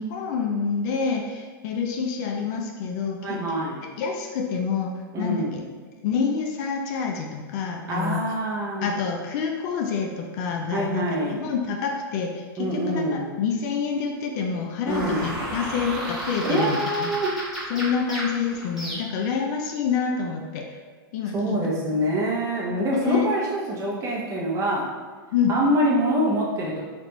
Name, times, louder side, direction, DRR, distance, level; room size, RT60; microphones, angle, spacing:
voice 1, 0.0-3.6 4.0-5.6 6.0-8.2 8.8-17.1 17.7-20.7 21.1-21.6 22.8-23.3 25.3-25.5, left 6 dB, 50° left, 2 dB, 0.4 m, -27 dB
voice 2, 3.2-3.8 5.1-5.5 7.9-8.9 10.7-11.4 12.6-13.3 14.9-15.2 16.4-17.4 21.3-24.9 25.5-26.8, right 1 dB, 25° right, -4 dB, 0.8 m, -25 dB
sound 1, 14.9-19.3, right 1 dB, 5° right, 1.1 m, -33 dB
3.3 x 2.5 x 2.9 m, 1.4 s
hypercardioid pair, 135°, 12 cm